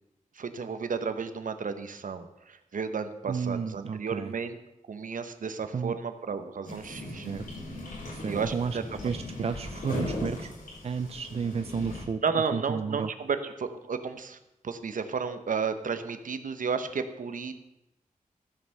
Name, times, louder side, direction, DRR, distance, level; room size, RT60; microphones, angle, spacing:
voice 1, 0.3-4.6 4.9-7.3 8.2-8.8 12.2-14.4 14.6-17.5, right 5 dB, 75° right, 9 dB, 1.0 m, -32 dB
voice 2, 3.3-4.4 5.7-6.0 6.9-7.6 8.1-10.5 10.8-12.2 12.5-13.1, right 5 dB, 50° right, 10 dB, 0.5 m, -32 dB
sound 1, 6.6-12.0, left 1 dB, 80° left, 3.7 m, -38 dB
14.0 x 5.6 x 6.5 m, 0.92 s
wide cardioid pair, 115°, 14 cm